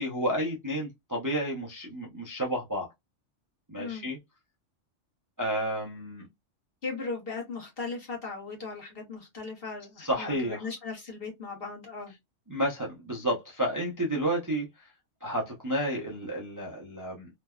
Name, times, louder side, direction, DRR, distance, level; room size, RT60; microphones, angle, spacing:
voice 1, 0.0-2.9 3.7-4.2 5.4-6.3 10.0-10.6 12.5-14.7 15.2-17.3, right 1 dB, 25° right, 0.5 m, -31 dB
voice 2, 3.8-4.1 6.8-12.1, left 4 dB, 50° left, 1.2 m, -38 dB
3.2 x 2.2 x 2.2 m
omnidirectional pair, 1.3 m